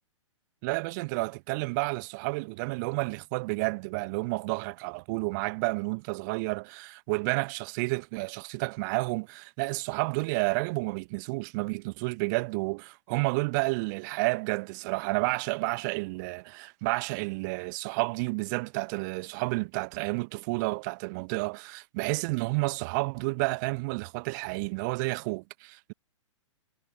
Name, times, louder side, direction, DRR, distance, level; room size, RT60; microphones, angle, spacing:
voice 1, 0.6-25.9, right 28 dB, 35° right, 1.3 m, -30 dB
figure-of-eight pair, 110°, 16 cm